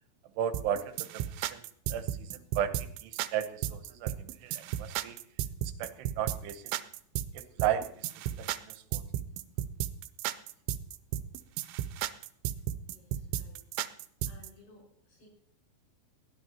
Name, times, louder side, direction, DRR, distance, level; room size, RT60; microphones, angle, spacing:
voice 1, 0.4-1.6 1.9-5.2 5.8-6.7 7.3-9.1, right 10 dB, 75° right, 9 dB, 2.9 m, -35 dB
sound 1, 0.5-14.5, right 12 dB, 90° right, 3.1 m, -34 dB
voice 2, 12.9-13.7 14.3-15.3, left 2 dB, 70° left, 0 dB, 7.5 m, -58 dB
21.5 x 15.5 x 2.9 m, 0.64 s
omnidirectional pair, 5.2 m